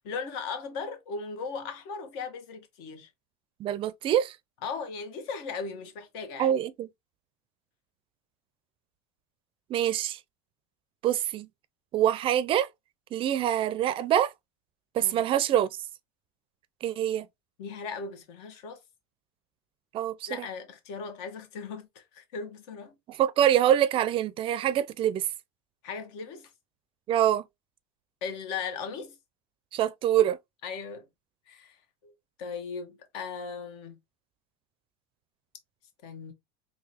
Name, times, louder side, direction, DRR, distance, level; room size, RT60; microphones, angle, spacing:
voice 1, 0.0-3.1 4.6-6.5 15.0-15.2 17.6-18.8 20.3-22.9 25.8-26.5 28.2-29.2 30.6-31.0 31.5-31.8 32.0-32.1 32.4-34.0 36.0-36.3, left 5 dB, 65° left, 1.3 m, -37 dB
voice 2, 3.6-4.4 6.4-6.9 9.7-10.2 11.0-11.5 11.9-12.7 13.1-14.3 14.9-15.7 16.8-17.3 19.9-20.5 23.1-25.3 27.1-27.4 29.7-30.4, right 11 dB, 35° right, 0.4 m, -25 dB
3.8 x 2.8 x 2.9 m
supercardioid pair, 120°, 15 cm